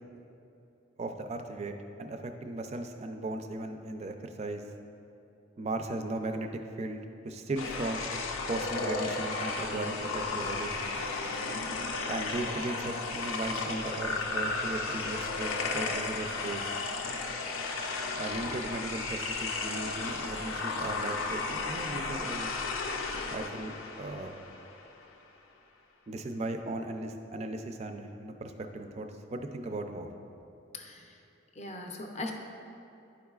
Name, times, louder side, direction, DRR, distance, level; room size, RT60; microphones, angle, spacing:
voice 1, 1.0-4.6 5.6-8.1 8.5-10.7 12.1-16.7 18.2-22.6 23.3-24.3 26.1-30.1, right 2 dB, 35° right, 6 dB, 0.3 m, -37 dB
sound 1, 7.6-24.9, left 3 dB, 85° left, 0.6 m, -34 dB
voice 2, 30.7-31.1 31.6-32.3, left 2 dB, 35° left, 2 dB, 0.5 m, -39 dB
10.0 x 4.7 x 2.3 m, 2.8 s
head